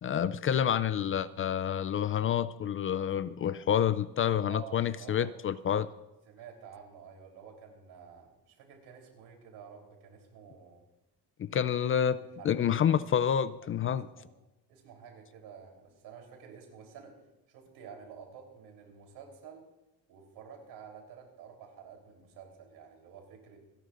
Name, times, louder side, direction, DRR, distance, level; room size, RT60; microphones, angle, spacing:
voice 1, 0.0-5.9 11.4-14.1, left 9 dB, 35° left, 15 dB, 0.4 m, -28 dB
voice 2, 4.4-5.3 5.8-5.9 6.3-10.8 12.2-12.7 13.6-14.4 14.7-19.6 20.1-23.6, right 7 dB, 85° right, 2 dB, 3.7 m, -50 dB
27.5 x 11.5 x 2.5 m, 0.99 s
cardioid pair, 135°, 38 cm